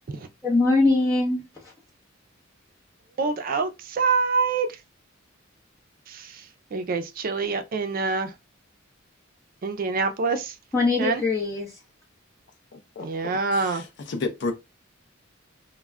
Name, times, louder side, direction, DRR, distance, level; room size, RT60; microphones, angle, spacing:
voice 1, 0.4-1.7 10.7-11.8, left 3 dB, 15° left, 0.8 m, -22 dB
voice 2, 3.2-4.8 6.1-8.3 9.6-10.6 11.0-11.2 13.0-13.8, right 4 dB, 45° right, 0.4 m, -26 dB
voice 3, 12.7-13.4 13.7-13.8 14.1-14.5, left 3 dB, 60° left, 0.5 m, -31 dB
2.3 x 2.1 x 3.3 m
head